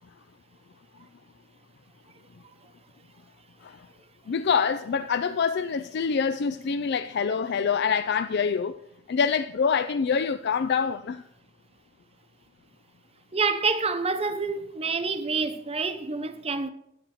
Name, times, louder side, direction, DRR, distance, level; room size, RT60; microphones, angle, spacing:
voice 1, 4.3-8.8 9.1-11.2, left 6 dB, 50° left, 0.4 m, -25 dB
voice 2, 13.3-16.7, right 4 dB, 30° right, 0.8 m, -27 dB
10.0 x 8.9 x 6.4 m
head